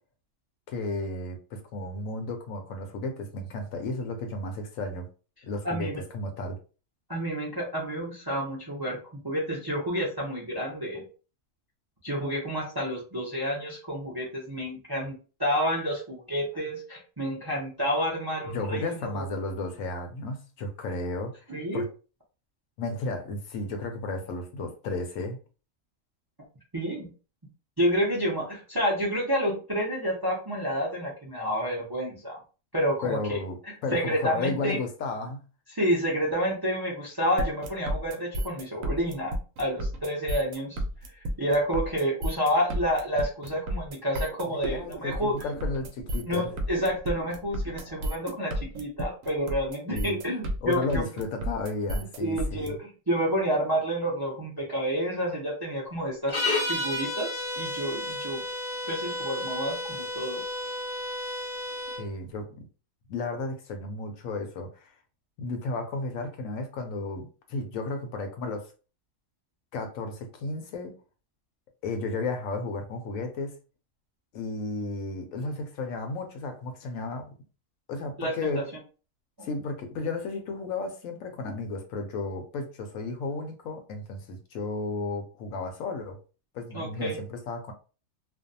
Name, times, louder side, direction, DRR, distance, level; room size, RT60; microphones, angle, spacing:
voice 1, 0.7-5.1 5.4-6.6 18.4-21.5 21.7-21.9 22.8-25.4 33.0-35.4 44.5-46.5 49.9-50.2 50.6-52.8 62.0-62.5 63.1-65.0 65.4-68.7 69.7-71.0 71.8-73.6 74.3-77.3 77.9-78.7 79.4-86.2 86.5-87.7, left 3 dB, 70° left, 0.9 m, -33 dB
voice 2, 5.6-6.0 7.1-11.0 12.0-19.3 21.5-21.8 26.7-27.1 27.8-32.4 32.7-33.4 33.9-34.8 35.7-40.8 41.1-45.3 46.3-51.0 52.2-56.4 56.7-58.4 58.9-60.4 78.2-78.6 79.4-79.5 86.7-87.2, equal, 40° right, 0.3 m, -29 dB
sound 1, 37.4-52.7, right 1 dB, 70° right, 0.9 m, -32 dB
sound 2, 56.3-62.1, left 1 dB, 50° left, 0.5 m, -32 dB
2.5 x 2.2 x 2.6 m
omnidirectional pair, 1.6 m